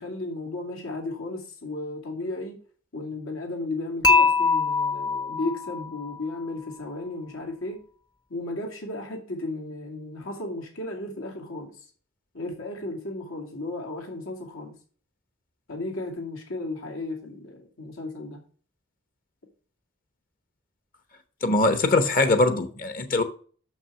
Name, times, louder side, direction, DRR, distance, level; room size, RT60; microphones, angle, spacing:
voice 1, 0.0-2.6 2.9-7.8 8.3-11.7 12.3-14.7 15.7-18.4, left 2 dB, 85° left, 2.4 m, -34 dB
Dishes pots and pans / Chink clink, 4.0-6.2, left 4 dB, 20° left, 0.7 m, -22 dB
voice 2, 21.4-23.2, left 2 dB, 45° left, 1.0 m, -22 dB
6.5 x 6.1 x 6.2 m
head